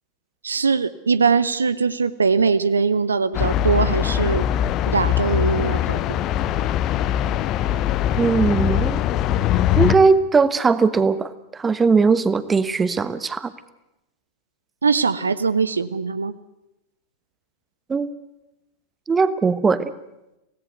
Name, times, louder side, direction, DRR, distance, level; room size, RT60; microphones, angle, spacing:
voice 1, 0.4-4.5 4.9-6.0 14.8-16.3, right 5 dB, 75° right, 15 dB, 0.8 m, -21 dB
sound 1, 3.3-10.0, left 11 dB, 35° left, 1.0 m, -21 dB
voice 2, 8.2-9.0 9.8-13.5 17.9-18.1 19.1-19.9, right 4 dB, 15° right, 15 dB, 1.1 m, -19 dB
25.0 x 17.5 x 8.0 m, 0.94 s
figure-of-eight pair, 90°, 0 cm